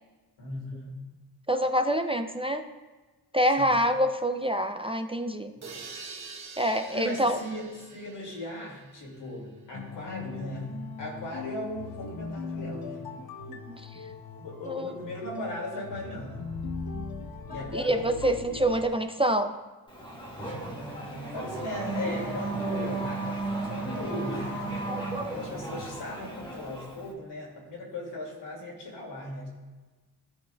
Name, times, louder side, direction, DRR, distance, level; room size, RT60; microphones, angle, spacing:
voice 1, 0.4-1.0 3.6-3.7 5.5-5.9 6.9-13.1 13.9-14.0 14.3-16.5 17.5-18.6 21.3-23.4 23.7-29.5, left 1 dB, 90° left, -2 dB, 2.3 m, -38 dB
voice 2, 1.5-2.6 3.3-5.5 6.6-7.4 13.2-14.1 14.7-15.1 17.7-19.5 24.9-25.4, equal, 15° right, 6 dB, 0.4 m, -27 dB
sound 1, 5.6-9.4, right 4 dB, 40° right, 1.0 m, -45 dB
sound 2, 9.7-19.0, left 5 dB, 65° left, 0.8 m, -40 dB
Race car auto racing / Accelerating revving vroom, 19.9-27.1, right 2 dB, 10° left, 1.6 m, -34 dB
14.5 x 5.4 x 2.2 m, 1.3 s
wide cardioid pair, 110°, 40 cm